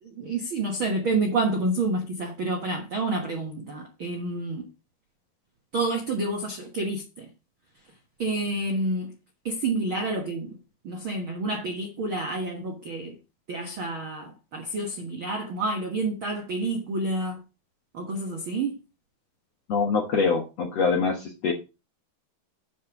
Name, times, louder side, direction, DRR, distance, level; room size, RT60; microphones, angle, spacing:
voice 1, 0.0-4.7 5.7-7.3 8.2-9.1 9.4-10.6 10.8-13.2 13.5-17.4 17.9-18.8, right 2 dB, 70° right, 1.2 m, -29 dB
voice 2, 19.7-21.5, left 4 dB, 60° left, 1.8 m, -24 dB
9.3 x 5.0 x 5.9 m
omnidirectional pair, 4.6 m